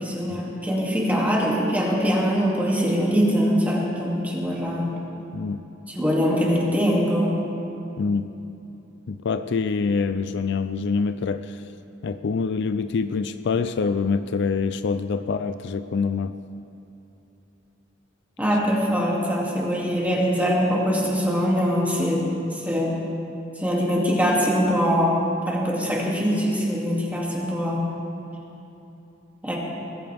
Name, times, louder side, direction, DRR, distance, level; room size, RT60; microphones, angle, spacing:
voice 1, 0.0-4.9 5.9-7.4 18.4-23.0 23.6-27.9 29.4-29.6, equal, 10° right, -4 dB, 2.6 m, -23 dB
voice 2, 5.3-5.6 8.0-8.3 9.1-11.6 12.0-16.4, left 5 dB, 60° left, 11 dB, 0.4 m, -25 dB
21.0 x 14.0 x 3.5 m, 2.9 s
head